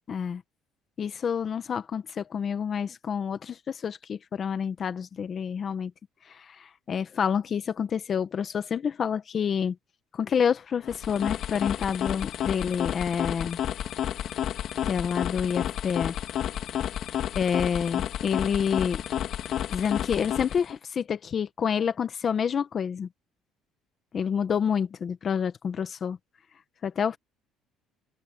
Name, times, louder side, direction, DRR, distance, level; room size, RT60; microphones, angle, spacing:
voice 1, 0.1-0.4 1.0-5.9 6.3-9.7 10.1-13.6 14.8-16.1 17.4-19.0 19.7-23.1 24.1-26.2 26.8-27.2, left 7 dB, 40° left, 1.3 m, -28 dB
sound 1, 10.8-20.8, left 10 dB, 60° left, 3.0 m, -31 dB
open air
cardioid pair, 115°, 0 cm